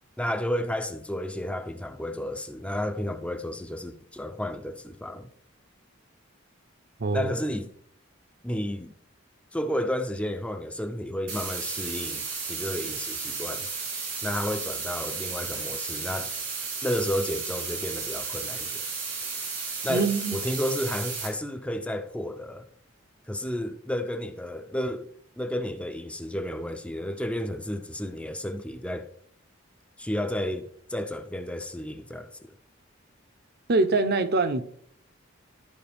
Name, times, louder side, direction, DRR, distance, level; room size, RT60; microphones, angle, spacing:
voice 1, 0.2-5.3 7.1-7.7 8.4-8.9 9.5-12.2 12.5-13.7 14.2-16.3 16.8-18.9 19.8-22.7 23.3-25.1 25.4-29.1 30.0-32.3, left 1 dB, 5° left, 0.5 m, -32 dB
voice 2, 7.0-7.3 19.9-20.4 33.7-34.6, right 3 dB, 55° right, 0.7 m, -24 dB
sound 1, 11.3-21.3, right 4 dB, 85° right, 3.0 m, -33 dB
12.5 x 4.9 x 3.5 m
head